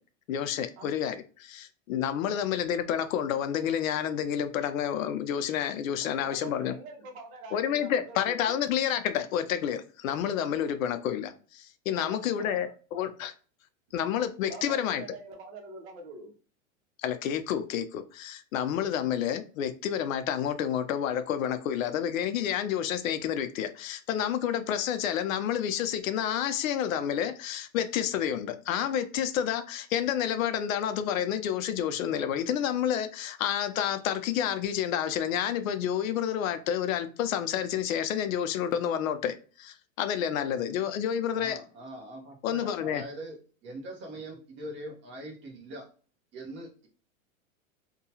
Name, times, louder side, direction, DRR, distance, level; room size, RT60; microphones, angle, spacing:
voice 1, 0.3-6.7 7.5-13.3 13.9-15.0 17.0-41.6 42.4-43.0, left 9 dB, 80° left, 0.6 m, -29 dB
voice 2, 6.0-8.6 11.9-13.0 14.5-16.3, right 3 dB, 55° right, 1.0 m, -45 dB
voice 3, 41.4-45.9 46.3-46.9, right 1 dB, 30° right, 0.9 m, -42 dB
2.8 x 2.3 x 2.8 m
supercardioid pair, 140°, 39 cm